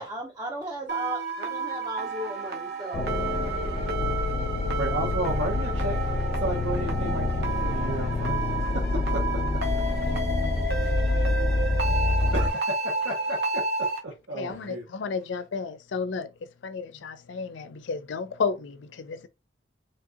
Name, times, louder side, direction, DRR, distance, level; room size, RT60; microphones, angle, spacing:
voice 1, 0.0-3.2, equal, 20° right, 0.5 m, -36 dB
sound 1, 0.9-14.0, right 3 dB, 55° right, 0.8 m, -31 dB
sound 2, 2.9-12.5, left 2 dB, 30° left, 0.6 m, -27 dB
voice 2, 4.8-9.8 10.8-10.9 12.3-14.9, right 2 dB, 90° right, 0.7 m, -34 dB
voice 3, 14.3-16.3 16.6-19.3, left 5 dB, 75° left, 0.4 m, -32 dB
3.2 x 2.7 x 2.4 m
head